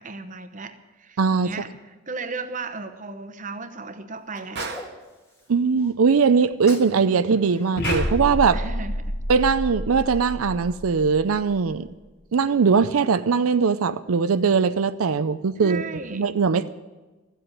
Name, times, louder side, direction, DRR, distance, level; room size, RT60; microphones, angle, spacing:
voice 1, 0.0-4.7 8.5-9.1 15.6-16.4, right 3 dB, 35° right, 8 dB, 0.9 m, -35 dB
voice 2, 1.2-1.5 5.5-8.6 9.3-11.9 12.3-15.8 16.1-16.7, right 5 dB, 90° right, 12 dB, 0.5 m, -20 dB
Sneeze, 4.3-5.9 6.4-7.0 7.3-8.7, left 1 dB, 15° left, 1.7 m, -43 dB
Gunshot gunfire, 4.6-5.0 7.8-8.3, right 4 dB, 55° right, 1.2 m, -32 dB
sound 1, 7.8-11.9, left 1 dB, 50° left, 1.2 m, -29 dB
14.0 x 8.0 x 9.7 m, 1.2 s
head